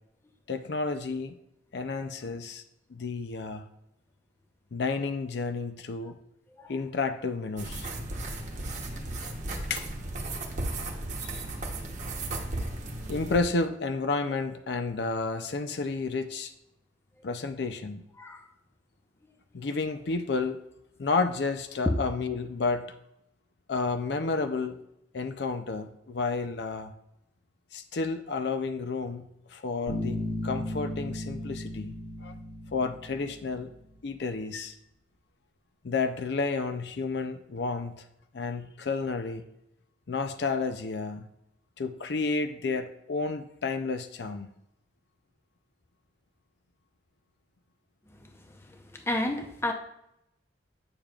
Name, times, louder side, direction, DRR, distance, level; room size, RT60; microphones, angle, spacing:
voice 1, 0.5-1.4 1.7-2.6 2.9-3.6 4.7-6.2 6.7-7.9 9.2-9.3 9.7-9.8 11.2-11.4 13.1-16.5 17.2-18.0 19.5-20.6 21.0-22.9 23.7-24.8 25.1-26.9 27.7-31.9 32.2-32.3 32.7-33.7 34.0-34.8 35.8-38.0 38.3-39.4 40.1-41.3 41.8-44.5, left 4 dB, 65° left, 8 dB, 0.5 m, -31 dB
sound 1, 7.6-13.4, right 2 dB, 40° right, 1.0 m, -35 dB
Bass guitar, 29.9-33.6, left 1 dB, 45° left, 2.0 m, -35 dB
voice 2, 48.9-49.7, left 1 dB, 15° left, 4 dB, 0.7 m, -30 dB
8.8 x 6.8 x 2.4 m, 0.81 s
head